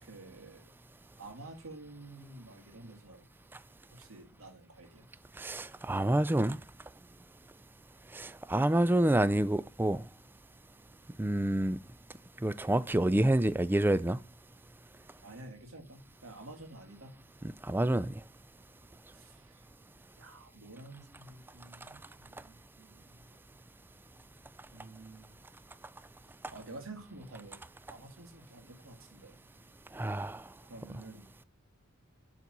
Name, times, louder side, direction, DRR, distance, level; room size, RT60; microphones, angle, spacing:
voice 1, 0.0-0.7 1.2-3.3 3.9-5.1 15.2-17.2 19.1-19.7 20.2-23.3 24.7-25.4 26.5-27.6 27.9-29.5 30.6-31.2, right 2 dB, 80° right, 2.1 m, -50 dB
voice 2, 5.4-6.6 8.1-10.0 11.2-11.8 12.4-14.2 17.6-18.1 29.9-30.4, right 1 dB, 10° right, 0.3 m, -28 dB
7.2 x 4.0 x 5.9 m
head